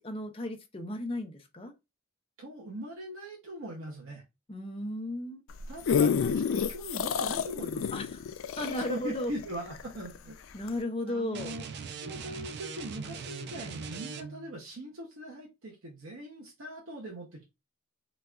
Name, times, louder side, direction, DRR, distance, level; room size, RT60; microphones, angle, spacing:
voice 1, 0.0-1.7 4.5-5.4 7.9-8.0 8.6-9.3 10.5-11.6, left 1 dB, 30° left, 0.6 m, -35 dB
voice 2, 2.4-4.2 5.7-8.0 8.7-10.3 11.1-11.6 12.0-17.4, right 1 dB, 90° right, 0.7 m, -41 dB
sound 1, 5.5-10.2 10.7-10.8, left 6 dB, 80° left, 0.4 m, -29 dB
sound 2, 11.3-14.6, right 6 dB, 55° right, 0.4 m, -41 dB
4.0 x 2.3 x 2.3 m
head